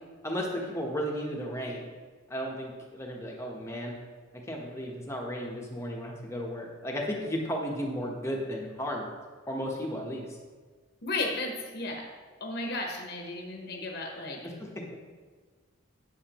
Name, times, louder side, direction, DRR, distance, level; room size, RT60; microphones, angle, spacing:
voice 1, 0.2-1.8 2.3-3.9 4.5-9.1 9.5-10.3 14.6-14.9, equal, 15° left, -1 dB, 1.1 m, -34 dB
voice 2, 11.0-12.1 12.4-14.4, left 2 dB, 50° left, 1 dB, 1.0 m, -34 dB
9.2 x 7.3 x 3.0 m, 1.5 s
head